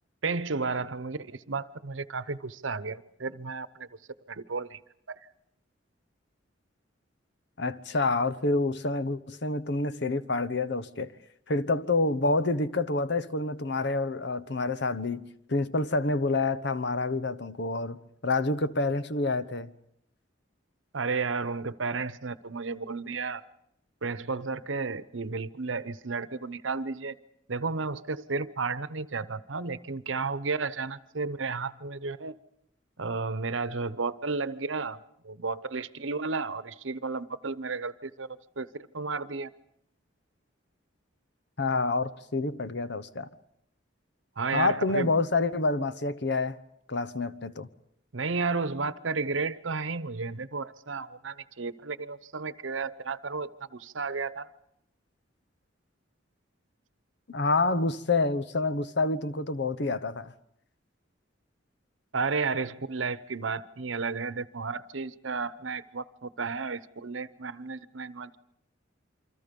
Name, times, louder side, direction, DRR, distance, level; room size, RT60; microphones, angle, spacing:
voice 1, 0.2-3.9 4.3-4.8 5.1-5.2 20.9-23.4 24.0-27.1 27.5-32.3 33.0-35.0 35.2-38.3 38.6-39.5 44.4-45.1 48.1-54.5 62.1-68.4, right 4 dB, 85° right, 0.9 m, -33 dB
voice 2, 7.6-11.1 11.5-19.7 41.6-43.3 44.5-46.6 46.9-47.7 57.3-60.3, left 3 dB, 65° left, 1.0 m, -28 dB
28.0 x 25.0 x 5.4 m
head